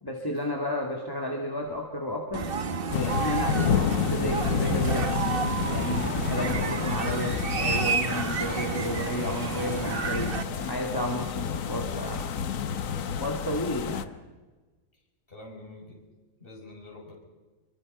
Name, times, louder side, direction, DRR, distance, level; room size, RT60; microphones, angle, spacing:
voice 1, 0.0-2.5 2.9-3.6 4.0-5.1 5.7-12.3 13.2-14.1, left 1 dB, 15° left, 1 dB, 2.2 m, -32 dB
sound 1, 2.3-10.4, right 5 dB, 40° right, 1.1 m, -30 dB
sound 2, 2.9-8.0, left 6 dB, 75° left, 1.5 m, -36 dB
sound 3, 2.9-14.0, left 7 dB, 60° left, 1.3 m, -30 dB
voice 2, 15.3-16.0 16.4-17.1, left 2 dB, 35° left, -3 dB, 7.1 m, -46 dB
26.5 x 23.5 x 5.5 m, 1.2 s
omnidirectional pair, 1.7 m